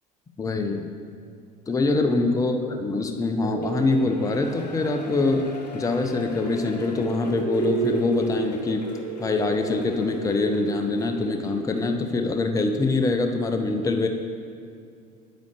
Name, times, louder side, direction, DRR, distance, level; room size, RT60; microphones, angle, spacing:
voice 1, 0.4-0.9 1.7-5.5 5.7-8.8 9.2-14.1, left 3 dB, 15° left, 6 dB, 0.6 m, -24 dB
sound 1, 3.4-12.2, right 4 dB, 75° right, 0.7 m, -33 dB
Shout / Cheering, 3.6-11.9 12.3-12.4, left 4 dB, 80° left, 0.8 m, -45 dB
8.9 x 8.4 x 3.3 m, 2.3 s
figure-of-eight pair, 60°, 21 cm